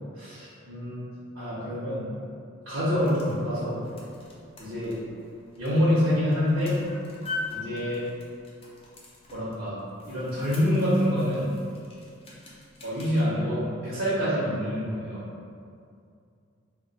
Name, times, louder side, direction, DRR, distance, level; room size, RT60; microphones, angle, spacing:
voice 1, 0.1-1.0 1.3-2.1 2.7-3.8 4.6-4.9 5.6-6.8 7.5-8.0 9.3-9.8 10.1-11.5 12.8-15.2, equal, 75° right, -9 dB, 0.7 m, -26 dB
sound 1, 2.8-13.2, left 3 dB, 30° left, 0.4 m, -43 dB
2.3 x 2.2 x 3.9 m, 2.4 s
head